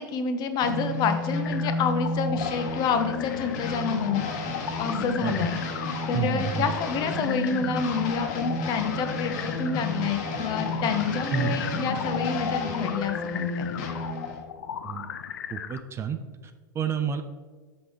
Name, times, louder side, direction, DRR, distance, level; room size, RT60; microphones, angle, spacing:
voice 1, 0.0-5.5 6.0-13.8, left 6 dB, 40° left, 8 dB, 0.7 m, -28 dB
sound 1, 0.6-14.4, left 2 dB, 55° left, 1.1 m, -31 dB
sound 2, 1.4-15.8, left 8 dB, 80° left, 0.4 m, -37 dB
voice 2, 6.1-6.7 11.3-11.6 12.6-12.7 14.8-15.1 15.5-17.2, right 7 dB, 25° right, 8 dB, 0.4 m, -30 dB
5.9 x 5.3 x 3.3 m, 1.5 s
hypercardioid pair, 100°, 11 cm